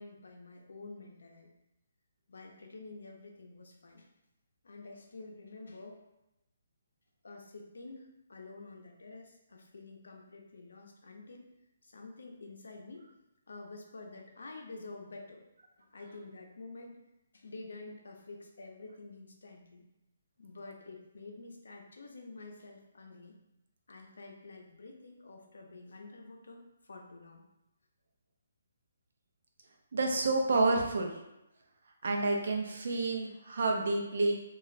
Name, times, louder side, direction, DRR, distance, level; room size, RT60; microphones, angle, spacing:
voice 1, 0.0-1.5 2.3-4.1 4.6-6.0 7.2-11.5 11.8-13.1 13.5-15.4 15.8-17.0 17.3-19.8 20.4-23.3 23.9-27.4, left 3 dB, 85° left, 2 dB, 0.6 m, -49 dB
voice 2, 29.9-31.1 32.0-34.4, right 2 dB, 65° right, 2 dB, 0.5 m, -29 dB
2.4 x 2.1 x 3.9 m, 0.92 s
hypercardioid pair, 165°, 0 cm